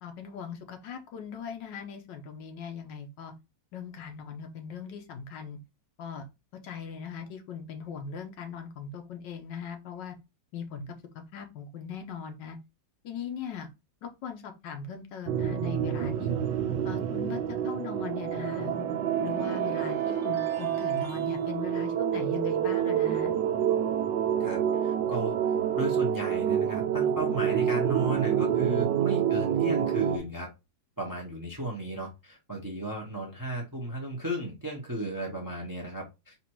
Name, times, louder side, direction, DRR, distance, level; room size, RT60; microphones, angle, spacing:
voice 1, 0.0-3.3 3.7-5.6 6.0-6.3 6.6-10.1 10.5-10.9 11.3-12.6 13.0-13.7 14.0-16.3 16.8-18.8 19.2-23.3, left 6 dB, 80° left, 1.5 m, -39 dB
sound 1, 15.3-30.2, right 9 dB, 90° right, 1.3 m, -28 dB
sound 2, 18.4-21.4, right 6 dB, 70° right, 1.3 m, -39 dB
voice 2, 24.4-25.4 25.7-30.5 31.0-36.4, right 1 dB, 20° right, 0.6 m, -35 dB
4.1 x 2.5 x 4.4 m
omnidirectional pair, 2.0 m